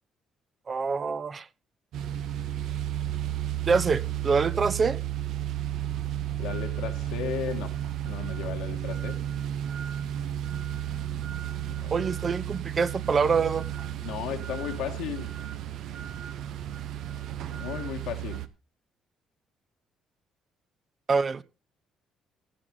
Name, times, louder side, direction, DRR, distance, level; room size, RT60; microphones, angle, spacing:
voice 1, 0.7-1.5 3.7-5.0 11.9-13.7 21.1-21.4, right 5 dB, 35° right, 0.7 m, -25 dB
sound 1, 1.9-18.5, right 11 dB, 75° right, 0.9 m, -33 dB
voice 2, 6.4-7.8 8.0-9.2 11.7-12.0 14.0-15.3 17.5-18.4, left 10 dB, 90° left, 1.8 m, -35 dB
16.0 x 8.0 x 3.9 m
cardioid pair, 105°, 0 cm